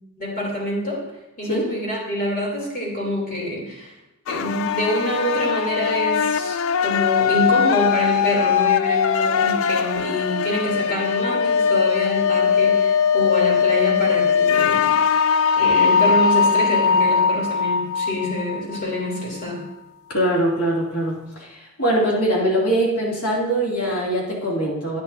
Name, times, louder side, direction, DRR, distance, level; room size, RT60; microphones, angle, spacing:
voice 1, 0.2-1.0 1.4-3.9 4.3-15.0 15.6-19.6, left 1 dB, 40° left, -4 dB, 3.3 m, -26 dB
sound 1, 4.3-19.2, left 6 dB, 65° left, 0.3 m, -20 dB
voice 2, 20.1-25.0, right 1 dB, 80° left, -5 dB, 2.7 m, -22 dB
10.5 x 10.0 x 2.8 m, 0.92 s
head